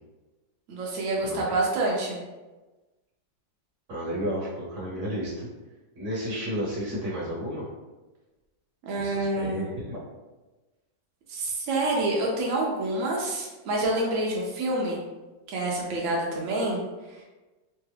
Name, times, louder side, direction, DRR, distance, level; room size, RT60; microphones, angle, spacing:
voice 1, 0.7-2.2 8.8-9.7 11.3-15.0 15.5-16.8 17.1-17.2, right 2 dB, 80° right, -2 dB, 0.7 m, -27 dB
voice 2, 3.9-5.5 5.9-7.6 9.0-10.0, equal, 45° right, -7 dB, 1.3 m, -32 dB
3.3 x 2.3 x 3.2 m, 1.2 s
omnidirectional pair, 2.0 m